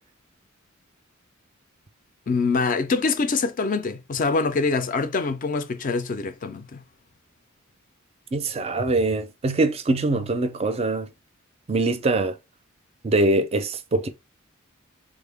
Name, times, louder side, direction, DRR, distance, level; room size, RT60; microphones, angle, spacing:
voice 1, 2.3-6.8, left 4 dB, 40° left, 0.4 m, -24 dB
voice 2, 8.3-11.1 11.7-12.4 13.0-14.1, right 2 dB, 30° right, 0.4 m, -23 dB
3.6 x 2.1 x 3.4 m
head